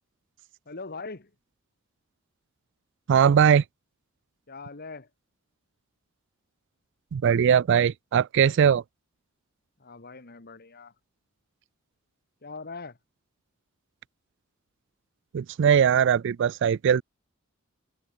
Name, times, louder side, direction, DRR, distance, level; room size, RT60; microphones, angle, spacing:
voice 1, 0.6-1.3 4.5-5.1 9.8-10.9 12.4-13.0, left 4 dB, 50° left, 1.7 m, -41 dB
voice 2, 3.1-3.6 7.1-8.8 15.3-17.0, right 8 dB, 60° right, 0.3 m, -20 dB
open air
head